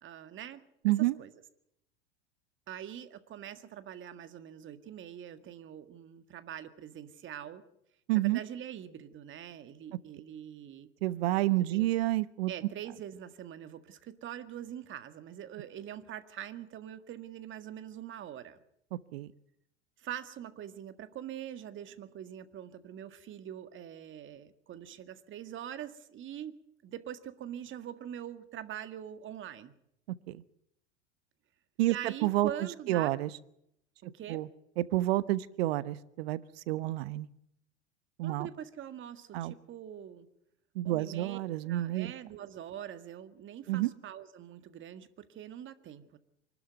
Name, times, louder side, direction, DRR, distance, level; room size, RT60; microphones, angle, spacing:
voice 1, 0.0-1.3 2.7-7.6 8.1-10.9 11.6-11.9 12.5-18.6 20.0-26.6 26.8-29.7 31.8-33.1 34.0-34.4 38.2-40.3 40.8-41.4 41.6-46.2, right 10 dB, 35° right, 11 dB, 1.8 m, -44 dB
voice 2, 0.8-1.2 8.1-8.4 11.0-12.5 18.9-19.3 30.1-30.4 31.8-32.5 32.9-33.3 34.3-34.5 34.8-36.4 36.7-37.3 38.2-38.5 39.3-39.5 40.7-42.1 43.7-43.9, right 16 dB, 65° right, 17 dB, 1.1 m, -29 dB
25.0 x 12.5 x 9.3 m, 0.76 s
hypercardioid pair, 90°, 34 cm